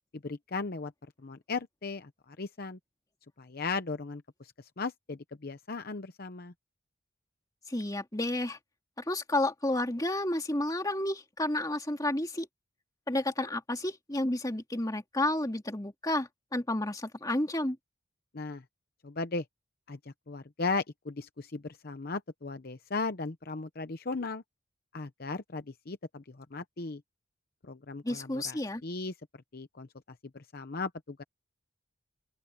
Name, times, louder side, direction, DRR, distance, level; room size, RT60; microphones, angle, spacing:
voice 1, 0.2-0.9 1.2-2.8 3.4-6.5 18.3-18.6 19.0-19.4 19.9-24.4 24.9-27.0 27.6-29.1 29.5-29.9 30.3-31.2, left 3 dB, 50° left, 0.8 m, -37 dB
voice 2, 7.7-8.6 9.1-12.5 13.1-17.8 28.0-28.8, left 1 dB, 20° left, 2.3 m, -31 dB
open air
head